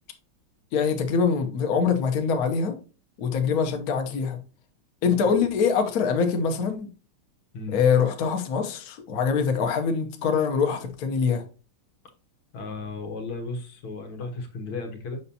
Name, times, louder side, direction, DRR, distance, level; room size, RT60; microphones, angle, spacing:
voice 1, 0.7-2.8 3.2-4.4 5.0-6.9 7.7-11.4, left 6 dB, 55° left, 1.3 m, -24 dB
voice 2, 12.5-15.2, left 3 dB, 85° left, 2.2 m, -35 dB
6.9 x 5.5 x 2.8 m
omnidirectional pair, 2.3 m